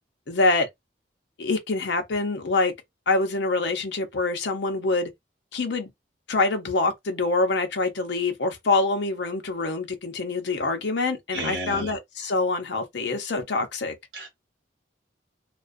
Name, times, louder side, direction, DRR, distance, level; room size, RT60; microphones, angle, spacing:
voice 1, 0.3-0.7 1.4-2.7 3.1-5.1 5.5-5.9 6.3-13.9, left 3 dB, 70° left, 0.6 m, -25 dB
voice 2, 11.3-11.9 14.1-14.3, right 1 dB, 70° right, 1.0 m, -32 dB
2.3 x 2.3 x 2.4 m
head